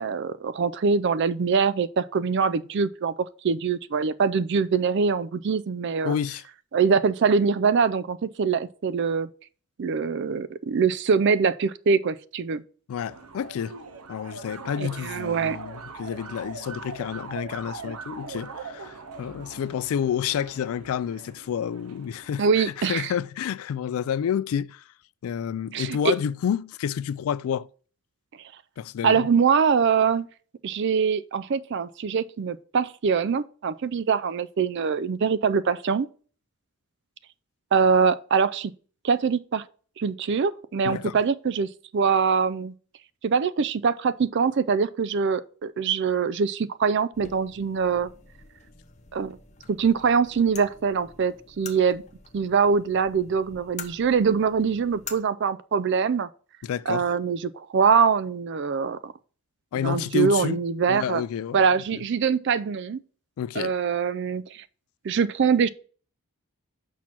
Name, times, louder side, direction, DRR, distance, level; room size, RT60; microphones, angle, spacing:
voice 1, 0.0-3.1 3.4-6.1 6.7-9.3 9.8-12.6 14.8-15.6 22.4-23.1 25.7-26.1 29.0-30.3 30.6-36.1 37.7-38.7 39.0-39.6 40.0-42.7 43.2-48.1 49.1-49.4 49.7-52.0 52.3-56.3 56.9-59.1 59.8-61.2 61.5-63.0 63.6-64.6 65.0-65.7, right 5 dB, 55° right, 0.4 m, -23 dB
voice 2, 6.0-6.4 12.9-13.8 14.1-24.8 25.2-27.7 28.8-29.3 40.8-41.2 56.6-57.1 59.7-60.6 60.9-61.6 61.9-62.0 63.4-63.7, left 8 dB, 75° left, 0.3 m, -29 dB
sound 1, 13.1-22.7, right 4 dB, 90° right, 0.7 m, -41 dB
sound 2, 47.1-55.1, left 6 dB, 30° left, 0.7 m, -46 dB
6.2 x 4.5 x 5.8 m
head